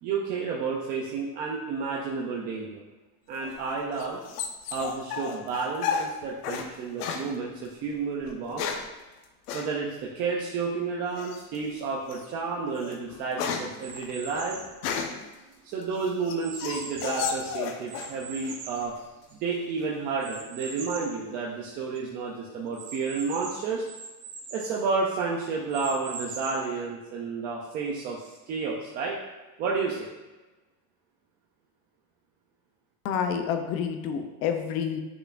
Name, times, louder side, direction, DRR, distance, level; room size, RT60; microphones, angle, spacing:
voice 1, 0.0-2.8 3.3-4.2 4.7-8.7 9.5-14.6 15.6-18.9 19.3-23.8 24.5-29.2 29.6-30.1, right 4 dB, 25° right, -3 dB, 0.3 m, -31 dB
sound 1, 3.4-6.7 7.0-7.3 8.2-8.9 9.5-9.7 11.2-11.6 12.1-12.3 12.7-15.3 15.8-18.2 18.4-19.0, left 6 dB, 90° left, 1.0 m, -33 dB
sound 2, 13.8-14.8 15.4-17.4 17.9-19.6 20.2-21.2 21.6-21.7 22.0-22.1 22.7-24.8 25.4-26.8, right 4 dB, 70° right, 1.6 m, -42 dB
voice 2, 33.0-35.0, left 7 dB, 35° left, 6 dB, 0.5 m, -28 dB
7.9 x 6.7 x 2.4 m, 1.1 s
supercardioid pair, 160°, 45 cm